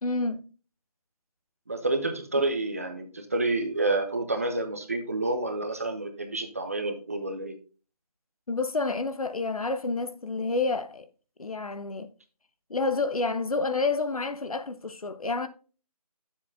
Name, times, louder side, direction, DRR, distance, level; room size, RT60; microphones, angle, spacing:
voice 1, 0.0-0.5 8.5-11.1 11.4-12.1 12.7-15.5, left 3 dB, 65° left, 1.0 m, -29 dB
voice 2, 1.7-7.5, right 2 dB, 25° right, 0.6 m, -29 dB
10.0 x 7.3 x 2.6 m
figure-of-eight pair, 170°, 20 cm